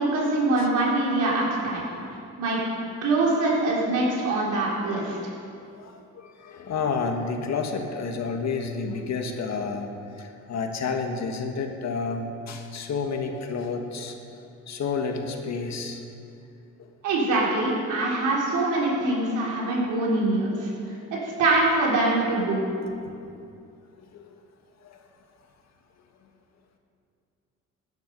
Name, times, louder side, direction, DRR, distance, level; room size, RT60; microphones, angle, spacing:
voice 1, 0.0-1.9 2.4-2.6 3.0-5.2 17.0-20.7 21.1-22.6, right 2 dB, 85° right, -4 dB, 4.2 m, -24 dB
voice 2, 5.8-14.1 14.7-16.0 22.8-23.1, left 4 dB, 60° left, 4 dB, 1.8 m, -30 dB
17.5 x 10.5 x 5.5 m, 2.5 s
cardioid pair, 90°, 30 cm